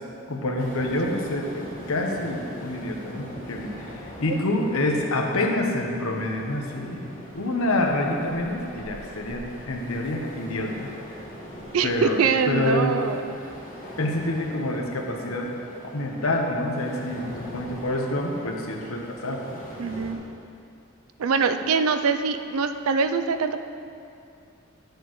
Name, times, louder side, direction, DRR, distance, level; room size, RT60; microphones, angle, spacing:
voice 1, 0.3-11.2 11.8-12.2 12.5-13.0 14.0-15.6 15.9-19.4, left 1 dB, 85° left, 1 dB, 1.0 m, -27 dB
sound 1, 0.6-20.2, equal, 40° left, 1.6 m, -42 dB
voice 2, 11.7-13.2 19.8-20.2 21.2-23.6, right 5 dB, 85° right, 9 dB, 0.4 m, -23 dB
10.5 x 6.7 x 3.1 m, 2.6 s
head